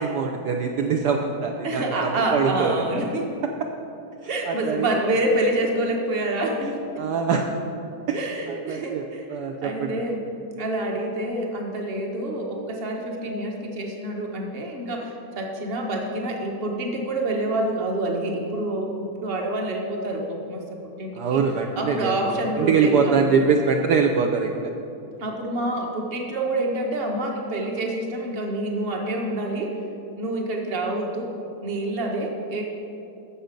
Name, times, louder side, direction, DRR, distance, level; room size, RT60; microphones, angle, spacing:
voice 1, 0.0-3.0 4.5-4.9 7.0-7.5 8.1-8.2 8.5-9.0 9.3-9.9 21.2-24.6, right 5 dB, 70° right, 2 dB, 1.1 m, -23 dB
voice 2, 1.6-3.3 4.3-6.8 8.1-9.2 9.6-10.3 10.6-21.4 21.8-23.3 25.2-29.7 30.2-31.3 31.6-32.6, right 1 dB, 35° right, 1 dB, 1.4 m, -27 dB
13.0 x 7.1 x 5.2 m, 2.7 s
omnidirectional pair, 1.9 m